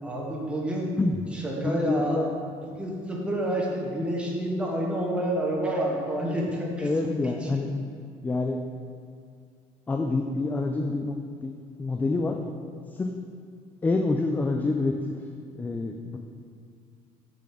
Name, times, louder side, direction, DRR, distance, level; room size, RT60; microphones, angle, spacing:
voice 1, 0.0-1.0 1.3-2.2 2.8-7.1 7.4-7.6, right 1 dB, 10° right, -3 dB, 1.3 m, -29 dB
voice 2, 1.6-2.3 6.8-7.7 8.2-8.6 9.9-11.5 11.8-12.4 12.9-13.1 13.8-15.1 15.6-16.2, left 3 dB, 10° left, 3 dB, 0.3 m, -27 dB
7.0 x 5.0 x 6.0 m, 2.2 s
cardioid pair, 160°, 14 cm